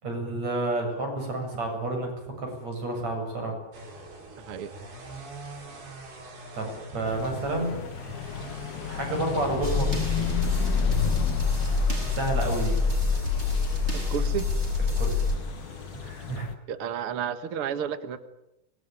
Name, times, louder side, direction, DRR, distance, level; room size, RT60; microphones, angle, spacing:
voice 1, 0.0-3.5 6.5-7.9 8.9-10.4 12.1-12.8 15.0-15.2 16.0-16.5, right 2 dB, 40° right, 3 dB, 8.8 m, -30 dB
sound 1, 3.7-16.4, right 1 dB, 65° right, 6.8 m, -44 dB
voice 2, 4.4-4.7 13.9-14.5 16.7-18.2, right 8 dB, 80° right, 11 dB, 1.2 m, -32 dB
sound 2, 7.1-16.6, left 10 dB, 70° left, 2.7 m, -35 dB
sound 3, 9.6-15.4, left 4 dB, 15° right, 6.2 m, -26 dB
25.0 x 21.0 x 9.5 m, 0.87 s
omnidirectional pair, 5.0 m